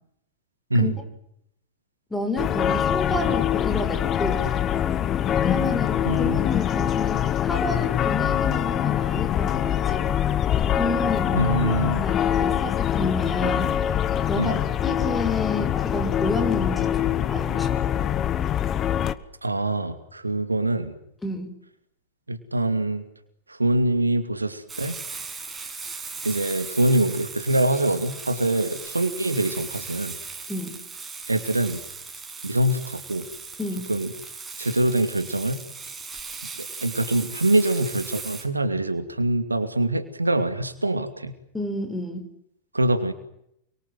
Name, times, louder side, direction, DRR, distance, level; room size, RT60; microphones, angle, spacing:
voice 1, 2.1-4.4 5.4-10.0 10.8-11.7 12.0-13.9 14.3-18.0 21.2-21.5 30.5-30.8 33.6-33.9 41.5-42.2, left 2 dB, 10° left, 8 dB, 6.4 m, -30 dB
sound 1, 2.4-19.1, left 10 dB, 30° left, 1.5 m, -24 dB
voice 2, 6.0-6.4 11.3-12.0 14.4-14.6 19.4-20.9 22.3-23.0 23.6-25.0 26.2-30.2 31.3-31.8 32.4-33.3 33.9-34.1 34.6-35.6 36.8-41.3 42.7-43.1, right 1 dB, 80° right, 9 dB, 2.6 m, -24 dB
Frying (food), 24.7-38.4, right 4 dB, 15° right, 7.1 m, -38 dB
29.0 x 24.0 x 7.9 m, 0.75 s
figure-of-eight pair, 90°, 0 cm